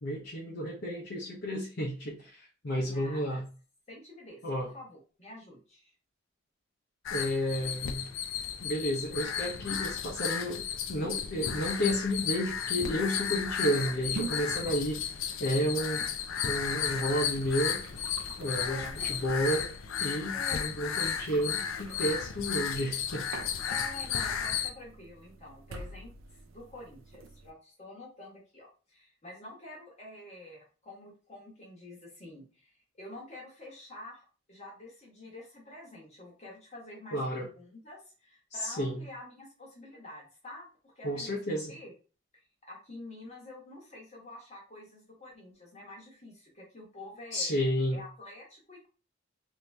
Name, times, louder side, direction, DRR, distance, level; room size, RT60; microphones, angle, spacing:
voice 1, 0.0-3.4 4.4-4.7 7.1-8.1 8.6-10.6 10.9-15.0 15.4-16.1 16.4-17.8 18.4-19.7 20.0-23.3 37.1-37.5 38.6-39.0 41.0-41.7 47.3-48.0, equal, 60° left, -4 dB, 0.8 m, -31 dB
voice 2, 2.8-3.4 3.9-5.9 18.4-19.0 20.3-20.7 23.7-41.4 41.7-41.9 42.7-47.5 47.9-48.9, left 2 dB, 35° left, -3 dB, 1.2 m, -48 dB
sound 1, 7.1-24.7, left 8 dB, 85° left, 0.4 m, -34 dB
sound 2, 13.7-27.5, right 3 dB, 80° right, 0.5 m, -48 dB
2.9 x 2.7 x 3.3 m, 0.36 s
head